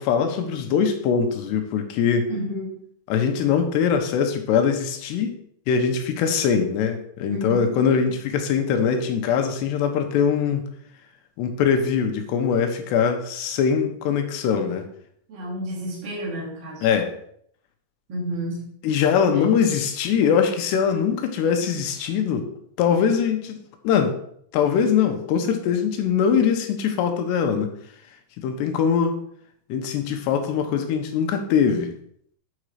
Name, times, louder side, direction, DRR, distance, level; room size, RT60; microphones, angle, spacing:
voice 1, 0.0-2.3 3.1-5.3 5.7-10.7 11.4-14.9 16.8-17.1 18.8-22.5 22.8-23.6 23.8-24.2 24.5-27.7 28.4-29.2 29.7-31.9, left 7 dB, 75° left, 5 dB, 3.0 m, -22 dB
voice 2, 2.3-2.8 7.3-7.7 15.3-16.9 18.1-18.7 19.3-19.6, equal, 30° right, -5 dB, 2.7 m, -31 dB
8.8 x 5.4 x 4.8 m, 0.67 s
omnidirectional pair, 5.1 m